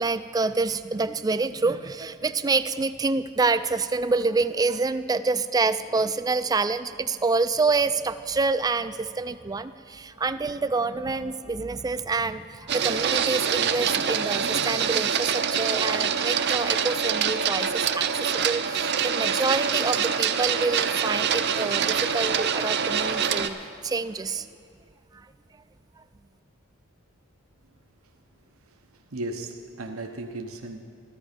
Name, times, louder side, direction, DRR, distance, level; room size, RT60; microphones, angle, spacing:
voice 1, 0.0-24.5 25.1-25.3, right 3 dB, 20° right, 12 dB, 0.3 m, -27 dB
Printer, 12.7-23.5, right 7 dB, 55° right, 0.6 m, -25 dB
voice 2, 29.1-30.8, right 2 dB, 90° right, 4 dB, 0.9 m, -35 dB
14.5 x 13.5 x 5.2 m, 2.5 s
head